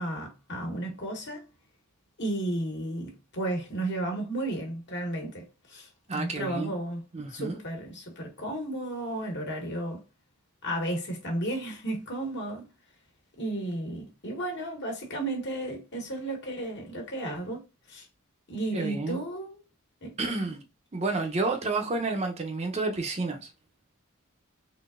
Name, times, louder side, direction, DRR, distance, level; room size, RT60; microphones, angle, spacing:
voice 1, 0.0-1.5 2.2-7.0 7.3-10.0 10.6-12.6 13.4-17.6 17.9-18.1 18.5-19.6 20.0-20.1, right 1 dB, 55° left, 1.5 m, -33 dB
voice 2, 6.1-6.7 7.1-7.6 18.7-19.2 20.2-20.6 20.9-23.5, right 3 dB, 30° right, 0.6 m, -30 dB
3.8 x 3.5 x 2.4 m
head